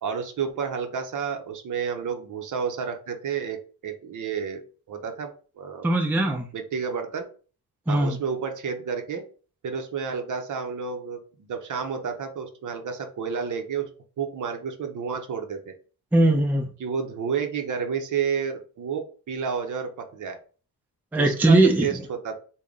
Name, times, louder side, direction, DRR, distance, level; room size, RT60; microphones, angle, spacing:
voice 1, 0.0-4.6 4.9-5.9 6.5-7.3 7.9-9.2 9.6-13.9 14.2-15.7 16.8-20.4 21.2-22.4, right 6 dB, 50° right, 0.7 m, -30 dB
voice 2, 5.8-6.5 7.9-8.2 16.1-16.7 21.1-22.0, right 2 dB, 5° right, 0.5 m, -20 dB
3.4 x 2.2 x 3.8 m
cardioid pair, 105°, 40 cm